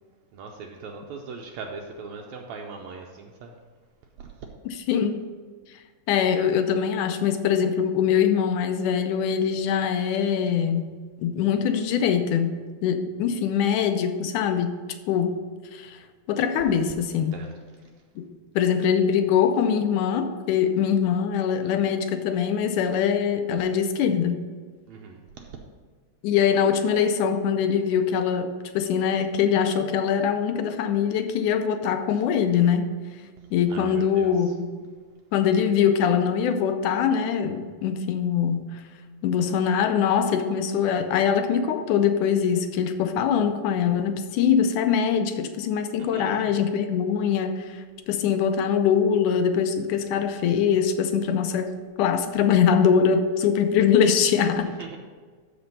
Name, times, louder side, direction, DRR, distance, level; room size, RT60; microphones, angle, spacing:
voice 1, 0.3-3.5 4.2-4.3 17.3-17.5 24.9-25.6 33.7-34.3 46.1-46.5 54.8-55.0, right 4 dB, 75° right, 1 dB, 1.9 m, -39 dB
voice 2, 4.7-5.2 6.1-14.8 15.1-15.4 15.7-16.0 16.3-17.4 18.2-24.4 26.2-32.9 33.5-34.7 35.3-38.8 39.2-54.7, left 7 dB, 85° left, 8 dB, 2.2 m, -23 dB
13.0 x 4.4 x 5.3 m, 1.5 s
omnidirectional pair, 3.5 m